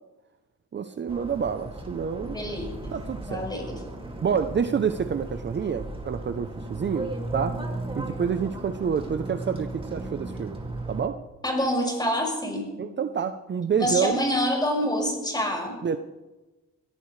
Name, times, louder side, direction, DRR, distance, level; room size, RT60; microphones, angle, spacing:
voice 1, 0.7-2.4 2.9-3.5 4.2-7.6 8.0-10.6 10.9-11.2 12.8-14.2 15.8-16.0, right 7 dB, 40° right, 9 dB, 0.7 m, -28 dB
sound 1, 1.1-11.0, right 2 dB, 20° right, 2.4 m, -36 dB
voice 2, 2.2-3.0 3.3-3.8 11.4-12.7 13.7-15.8, equal, 15° left, -1 dB, 5.8 m, -27 dB
21.5 x 15.0 x 3.3 m, 1.1 s
cardioid pair, 100°, 30 cm